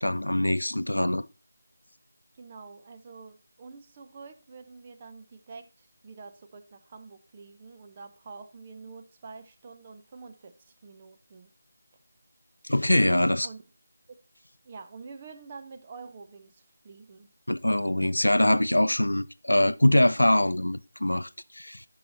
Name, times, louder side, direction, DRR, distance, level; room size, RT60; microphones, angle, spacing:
voice 1, 0.0-1.3 12.6-13.5 17.5-21.8, left 1 dB, 80° left, 0.5 m, -23 dB
voice 2, 2.3-11.5 13.4-13.6 14.6-17.3, right 4 dB, 25° right, 0.8 m, -47 dB
10.5 x 5.8 x 4.0 m
figure-of-eight pair, 165°, 0 cm